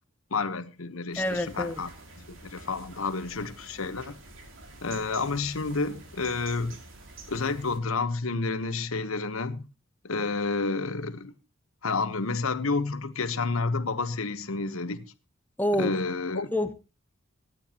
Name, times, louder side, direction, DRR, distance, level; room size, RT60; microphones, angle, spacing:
voice 1, 0.3-1.9 2.3-4.1 4.8-6.8 7.3-9.6 10.0-11.3 11.8-15.1 15.7-16.5, left 3 dB, 85° left, 1.1 m, -30 dB
sound 1, 1.1-7.8, right 2 dB, 70° right, 3.0 m, -48 dB
voice 2, 1.2-1.8 15.6-15.9 16.5-16.7, left 1 dB, 10° left, 0.7 m, -27 dB
25.0 x 9.3 x 2.9 m
head